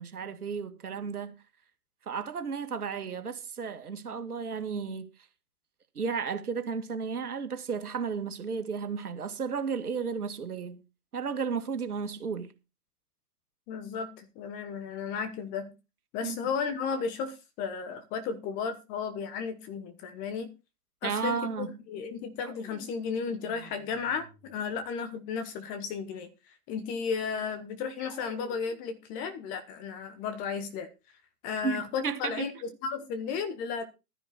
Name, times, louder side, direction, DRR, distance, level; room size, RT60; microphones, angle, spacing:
voice 1, 0.0-1.4 2.1-5.1 5.9-10.8 11.1-12.5 16.2-16.4 21.0-21.7 31.6-32.5, right 6 dB, 70° right, 2.4 m, -33 dB
voice 2, 13.7-15.7 16.1-20.5 21.0-26.3 26.7-30.9 31.4-33.8, left 6 dB, 15° left, 1.1 m, -34 dB
sound 1, 22.4-24.9 28.0-29.0, right 2 dB, ahead, 2.9 m, -53 dB
12.5 x 10.5 x 4.1 m
hypercardioid pair, 140°, 47 cm